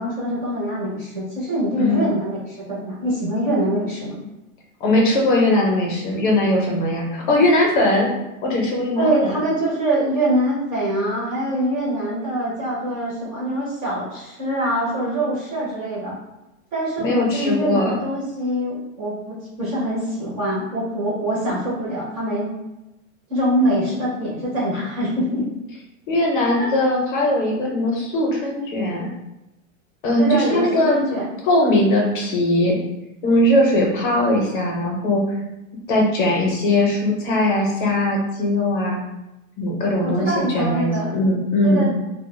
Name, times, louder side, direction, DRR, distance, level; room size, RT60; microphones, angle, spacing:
voice 1, 0.0-4.2 8.9-16.1 16.7-22.5 23.3-25.5 26.6-26.7 30.2-31.2 40.0-41.1 41.6-41.9, right 1 dB, 25° right, -7 dB, 0.4 m, -24 dB
voice 2, 1.7-2.0 4.8-8.1 8.4-9.4 17.0-17.9 26.1-29.1 30.0-31.0 31.4-32.8 33.2-35.3 35.9-39.0 39.6-41.9, left 1 dB, 40° left, -1 dB, 0.5 m, -20 dB
2.1 x 2.0 x 3.0 m, 0.96 s
supercardioid pair, 170°, 40 cm